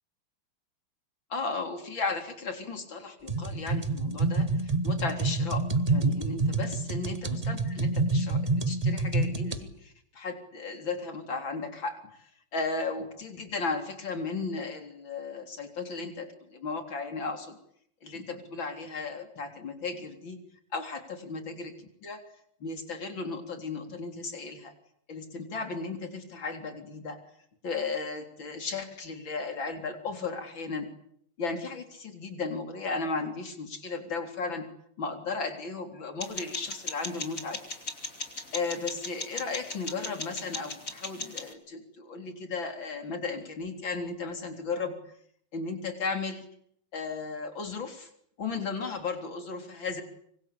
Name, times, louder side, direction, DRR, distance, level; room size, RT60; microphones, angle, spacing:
voice 1, 1.3-17.6 18.0-20.4 20.7-22.2 22.6-24.7 25.1-27.2 27.6-30.9 31.4-34.6 35.0-37.6 38.5-45.0 45.5-46.4 46.9-48.1 48.4-50.0, left 4 dB, 65° left, 6 dB, 4.5 m, -35 dB
sound 1, 3.3-9.6, right 3 dB, 20° right, 1.6 m, -27 dB
sound 2, 36.2-41.5, left 3 dB, 35° left, 4.0 m, -38 dB
26.0 x 25.5 x 8.7 m, 0.71 s
omnidirectional pair, 2.3 m